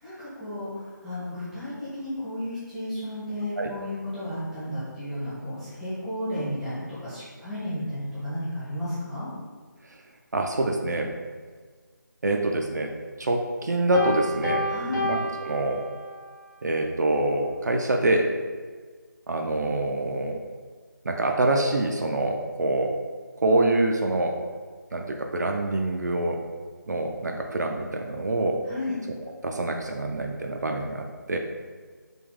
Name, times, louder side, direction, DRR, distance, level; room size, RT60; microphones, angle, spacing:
voice 1, 0.0-9.3 14.7-15.1 28.7-28.9, left 1 dB, 5° right, -13 dB, 0.6 m, -33 dB
voice 2, 10.3-11.1 12.2-12.9 13.2-14.7 15.0-15.8 16.6-18.3 19.3-20.4 21.0-22.9 23.4-24.4 24.9-26.4 26.9-28.6 29.4-31.4, right 2 dB, 60° right, 2 dB, 0.4 m, -25 dB
Piano, 13.9-16.3, equal, 65° left, 0.9 m, -30 dB
3.4 x 2.2 x 3.6 m, 1.5 s
figure-of-eight pair, 160°, 11 cm